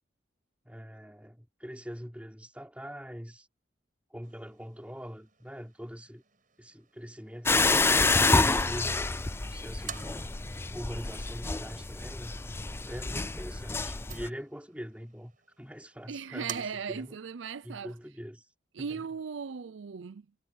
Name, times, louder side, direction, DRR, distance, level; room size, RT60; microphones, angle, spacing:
voice 1, 0.6-3.5 4.1-6.2 6.6-9.1 9.4-10.2 10.7-12.4 12.9-15.3 15.6-17.2 17.6-18.5 18.8-19.1, equal, 5° right, 3.7 m, -43 dB
sound 1, 4.2-17.2, right 8 dB, 45° right, 5.8 m, -51 dB
sound 2, 7.5-14.3, left 3 dB, 15° left, 0.4 m, -28 dB
voice 2, 16.1-17.9 18.7-20.3, right 6 dB, 80° right, 0.5 m, -37 dB
head